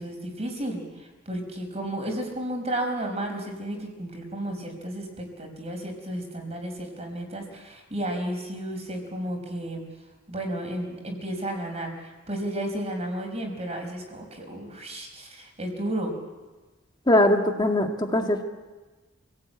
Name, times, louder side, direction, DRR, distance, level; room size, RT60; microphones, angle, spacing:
voice 1, 0.0-9.8 10.3-16.1, right 1 dB, 30° right, 3 dB, 5.0 m, -33 dB
voice 2, 17.1-18.4, left 1 dB, 20° left, 3 dB, 2.1 m, -21 dB
27.5 x 17.5 x 8.9 m, 1.2 s
head